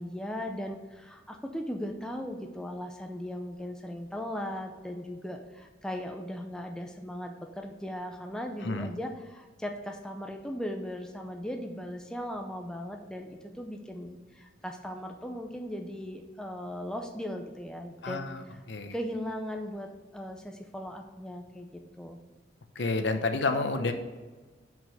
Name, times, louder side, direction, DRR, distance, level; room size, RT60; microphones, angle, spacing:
voice 1, 0.0-18.6 18.9-22.2, equal, 5° left, 3 dB, 0.5 m, -38 dB
voice 2, 18.0-18.4 18.7-18.9 22.8-23.9, left 3 dB, 70° left, 7 dB, 0.8 m, -29 dB
6.2 x 5.2 x 6.5 m, 1.3 s
head